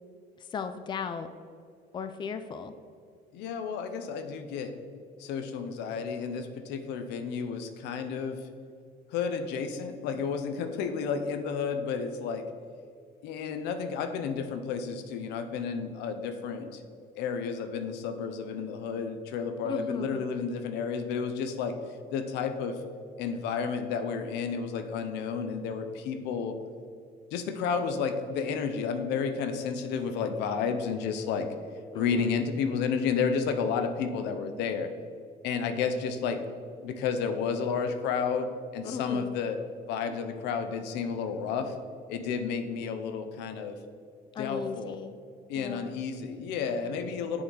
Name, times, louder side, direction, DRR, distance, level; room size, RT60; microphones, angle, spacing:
voice 1, 0.5-1.3 1.9-2.7 19.6-20.2 31.9-32.1 38.8-39.4 44.3-45.2 45.5-46.0, left 5 dB, 25° left, 9 dB, 0.4 m, -36 dB
voice 2, 3.3-4.8 5.2-8.4 9.1-12.5 13.2-16.8 17.1-21.8 22.1-22.8 23.2-26.6 27.3-31.5 31.9-34.9 35.4-36.4 36.8-39.6 39.9-41.7 42.1-43.8 44.4-45.0 45.5-47.4, left 6 dB, 90° left, 8 dB, 0.6 m, -31 dB
8.5 x 3.8 x 3.9 m, 2.2 s
cardioid pair, 110°, 17 cm